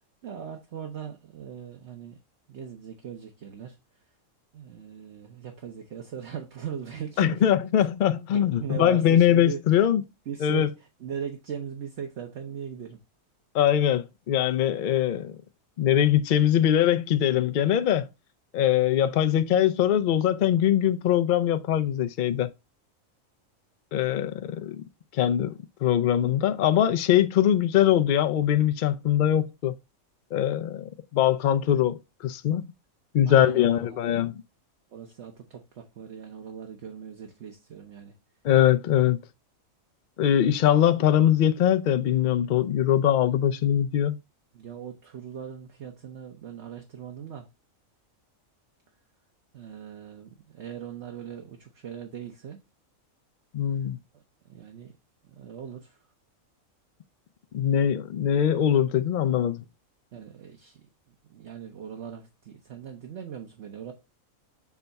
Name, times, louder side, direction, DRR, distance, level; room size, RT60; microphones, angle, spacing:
voice 1, 0.2-2.2 2.5-3.8 4.5-7.5 7.8-7.9 8.5-9.6 10.3-13.0 33.2-34.0 34.9-38.1 44.5-47.5 49.5-52.6 54.5-54.9 55.3-56.0 60.1-60.8 61.3-63.9, right 8 dB, 60° right, 1.1 m, -39 dB
voice 2, 7.2-10.0 10.4-10.7 13.5-15.4 15.8-18.1 18.5-22.5 23.9-24.8 25.1-25.5 25.8-29.7 30.3-32.6 33.1-34.4 38.4-39.2 40.2-44.2 53.5-54.0 57.5-59.6, left 10 dB, 80° left, 0.4 m, -22 dB
7.2 x 3.4 x 4.0 m
omnidirectional pair, 1.4 m